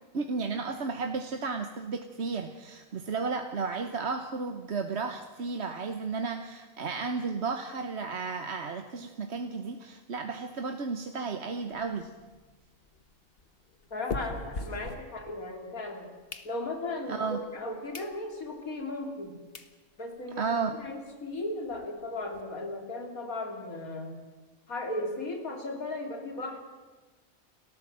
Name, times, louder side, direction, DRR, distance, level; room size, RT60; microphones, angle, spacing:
voice 1, 0.1-12.1 17.1-17.4 20.3-20.7, right 4 dB, 55° right, 6 dB, 1.3 m, -33 dB
sound 1, 11.7-15.7 16.0-17.0 17.5-17.6 17.9-18.2 18.6-18.7 19.2-19.3 19.5-19.7 20.2-20.3 20.4-20.6 20.9-21.0 21.3-22.4, left 3 dB, 45° left, 1.6 m, -42 dB
voice 2, 13.9-16.1 16.5-19.4 20.0-20.5 20.8-24.1 24.7-26.6, left 2 dB, 90° left, 4 dB, 3.4 m, -36 dB
29.5 x 13.0 x 7.7 m, 1.3 s
omnidirectional pair, 1.4 m